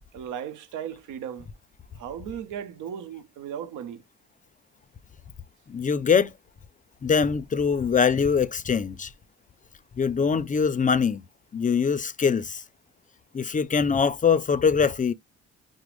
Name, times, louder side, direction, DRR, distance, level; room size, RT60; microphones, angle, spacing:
voice 1, 0.1-1.5 2.0-4.0, right 9 dB, 85° right, 0.8 m, -36 dB
voice 2, 5.7-6.3 7.0-9.1 10.0-11.2 11.5-12.6 13.3-15.1, left 6 dB, 25° left, 0.4 m, -23 dB
5.9 x 2.1 x 3.2 m
cardioid pair, 90°, 30 cm